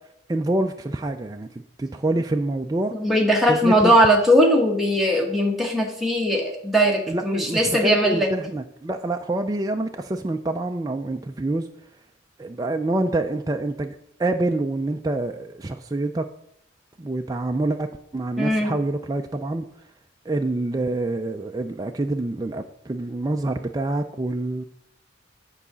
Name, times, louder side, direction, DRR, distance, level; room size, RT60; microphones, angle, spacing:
voice 1, 0.3-1.5 1.8-2.9 3.5-3.9 7.1-11.7 12.4-16.3 17.0-19.7 20.3-24.6, right 2 dB, 20° right, 0.4 m, -26 dB
voice 2, 2.9-8.3 18.4-18.7, equal, ahead, 1.4 m, -19 dB
8.5 x 4.8 x 6.9 m
head